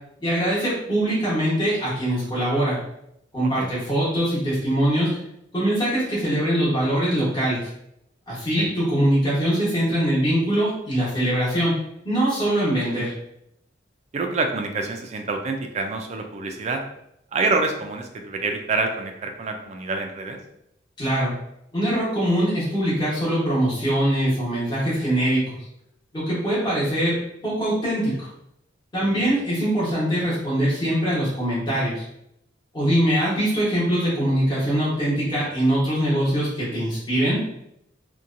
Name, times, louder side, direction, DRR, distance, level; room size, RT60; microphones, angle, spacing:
voice 1, 0.2-2.8 3.3-5.1 5.5-7.7 8.3-11.8 12.0-13.1 21.0-21.3 21.7-25.6 26.1-27.1 27.4-28.3 28.9-32.0 32.7-37.4, right 1 dB, 25° left, -10 dB, 1.1 m, -22 dB
voice 2, 14.1-16.8 17.3-20.4 29.2-29.3, right 3 dB, 35° right, 4 dB, 0.3 m, -27 dB
2.7 x 2.2 x 2.5 m, 0.78 s
head